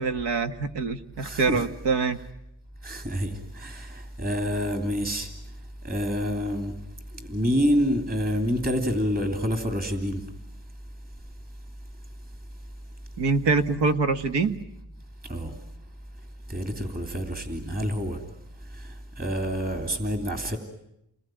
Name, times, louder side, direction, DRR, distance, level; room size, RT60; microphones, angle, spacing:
voice 1, 0.0-2.2 13.2-14.6, right 4 dB, 80° right, 9 dB, 1.9 m, -24 dB
voice 2, 1.2-1.6 2.8-5.3 5.8-6.7 7.2-10.2 15.3-15.5 16.5-18.2 18.8-20.6, equal, 20° right, 5 dB, 3.2 m, -27 dB
29.5 x 21.0 x 9.2 m, 0.82 s
cardioid pair, 130°, 41 cm